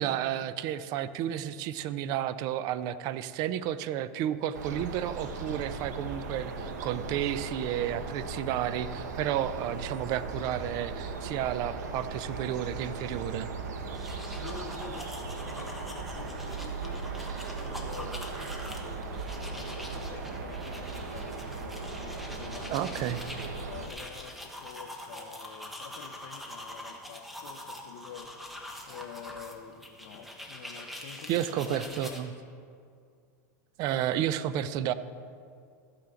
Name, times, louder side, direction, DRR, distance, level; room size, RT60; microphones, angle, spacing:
voice 1, 0.0-13.5 22.7-23.2 31.3-32.3 33.8-34.9, right 11 dB, 45° right, 14 dB, 0.5 m, -31 dB
sound 1, 4.5-23.9, right 4 dB, 85° right, 1.2 m, -38 dB
sound 2, 13.8-32.2, left 1 dB, ahead, 1.2 m, -44 dB
voice 2, 14.4-15.0 15.4-19.0 19.4-23.0 23.6-28.3 28.8-32.2, left 8 dB, 60° left, 3 dB, 0.8 m, -47 dB
14.0 x 8.8 x 3.8 m, 2.3 s
supercardioid pair, 130°, 9 cm